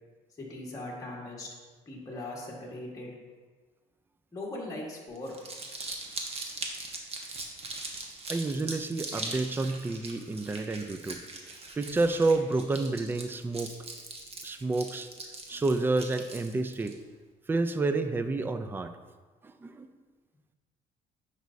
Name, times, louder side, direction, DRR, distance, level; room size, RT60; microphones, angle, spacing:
voice 1, 0.4-1.5 1.9-3.1 4.3-5.4, left 2 dB, 20° left, -4 dB, 1.5 m, -39 dB
Crumpling crinkling, 5.2-16.9, right 3 dB, 35° right, 1.0 m, -40 dB
voice 2, 8.3-11.2 11.8-13.7 14.4-15.1 15.5-17.0 17.5-18.9 19.4-19.9, right 3 dB, 15° right, 9 dB, 0.4 m, -29 dB
9.2 x 5.3 x 2.7 m, 1.4 s
cardioid pair, 110°, 17 cm